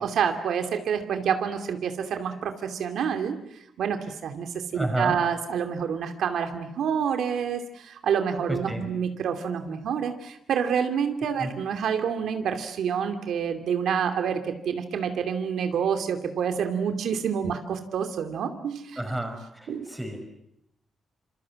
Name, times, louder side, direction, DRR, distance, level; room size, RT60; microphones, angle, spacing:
voice 1, 0.0-3.4 3.8-19.0 19.7-19.9, right 7 dB, 70° right, 7 dB, 2.6 m, -28 dB
voice 2, 4.7-5.2 8.7-8.8 11.4-11.5 19.0-20.2, right 1 dB, 5° right, 4 dB, 5.8 m, -30 dB
27.5 x 27.0 x 7.6 m, 0.79 s
wide cardioid pair, 175°, 0 cm